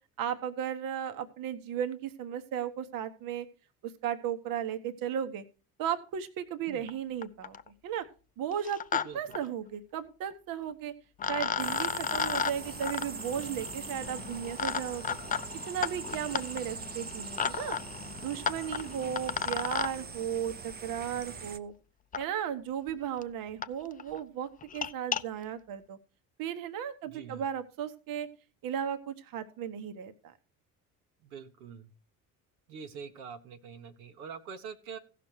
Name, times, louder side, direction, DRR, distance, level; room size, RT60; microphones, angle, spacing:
voice 1, 0.2-3.5 3.8-5.4 5.8-7.6 7.8-8.0 8.4-10.9 11.3-15.0 15.7-17.8 18.2-21.7 22.2-26.0 26.4-28.3 28.6-30.3, right 9 dB, 50° right, 9 dB, 1.2 m, -35 dB
sound 1, 6.9-7.0 7.2-7.7 8.5-9.0 9.3-9.4 10.7-10.8 11.2-19.9 21.2-21.3 22.1-22.2 22.9-23.0 23.2-23.3 23.6-23.7 24.0-24.2 24.6-25.2, left 7 dB, 20° left, 0.5 m, -34 dB
voice 2, 9.0-9.4 27.0-27.5 31.2-31.9 32.7-35.0, right 6 dB, 75° right, 6 dB, 1.3 m, -45 dB
sound 2, 11.6-21.6, right 5 dB, 20° right, 0.9 m, -43 dB
16.0 x 5.9 x 4.6 m, 0.35 s
hypercardioid pair, 65°, 43 cm